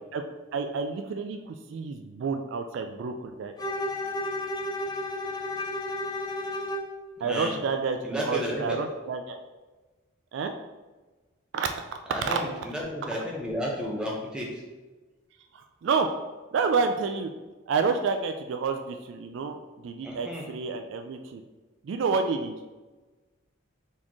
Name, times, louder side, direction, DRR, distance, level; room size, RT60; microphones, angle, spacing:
voice 1, 0.5-3.5 7.2-9.4 10.3-10.5 11.5-11.7 12.3-12.4 15.5-16.1 16.5-17.3 17.7-21.4 21.8-22.6, right 5 dB, 60° right, 6 dB, 0.3 m, -29 dB
Bowed string instrument, 3.6-7.0, left 1 dB, 20° left, 0.4 m, -32 dB
voice 2, 7.2-7.5 8.0-8.8 12.1-14.5 20.0-20.4, equal, 5° right, -3 dB, 0.7 m, -32 dB
4.2 x 3.1 x 3.6 m, 1.2 s
head